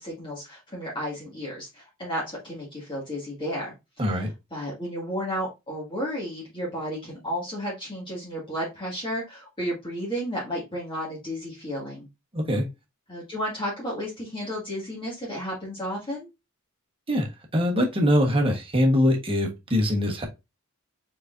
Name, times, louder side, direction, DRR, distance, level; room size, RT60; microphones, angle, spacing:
voice 1, 0.0-3.7 4.1-4.2 4.5-12.1 13.1-16.3, equal, 25° left, 2.0 m, -32 dB
voice 2, 12.3-12.6 17.1-17.3 17.5-20.3, left 1 dB, 25° right, 1.3 m, -22 dB
4.8 x 4.2 x 2.6 m
head